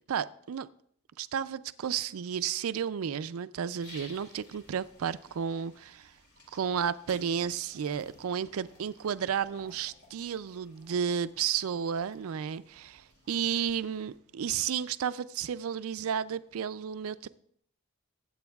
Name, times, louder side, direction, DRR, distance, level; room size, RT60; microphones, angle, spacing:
voice 1, 0.1-0.7 1.2-6.1 6.5-17.3, right 8 dB, 80° right, 14 dB, 0.4 m, -32 dB
sound 1, 3.8-14.2, left 2 dB, 50° left, 2.0 m, -56 dB
20.0 x 8.6 x 2.3 m, 0.68 s
head